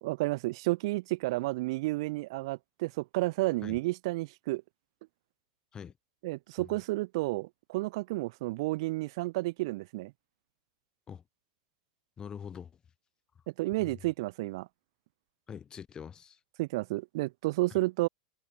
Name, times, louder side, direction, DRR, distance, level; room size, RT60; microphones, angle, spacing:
voice 1, 0.0-4.6 6.2-10.1 13.6-14.7 16.6-18.1, right 21 dB, 65° right, 0.6 m, -31 dB
voice 2, 12.2-12.7 13.8-14.0 15.5-16.4, left 7 dB, 25° left, 3.0 m, -44 dB
hypercardioid pair, 100°, 3 cm